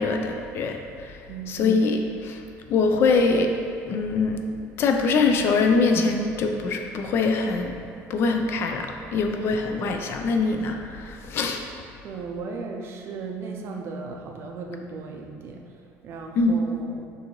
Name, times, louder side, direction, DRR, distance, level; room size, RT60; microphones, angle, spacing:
voice 1, 0.0-1.2 1.5-2.0 2.2-2.4 2.7-3.5 3.9-4.4 4.8-7.8 8.1-11.6 16.4-16.6, left 4 dB, 45° left, 4 dB, 0.3 m, -23 dB
voice 2, 1.3-1.9 12.0-17.1, right 4 dB, 45° right, 2 dB, 0.4 m, -36 dB
6.2 x 2.6 x 3.0 m, 2.4 s
cardioid pair, 150°, 6 cm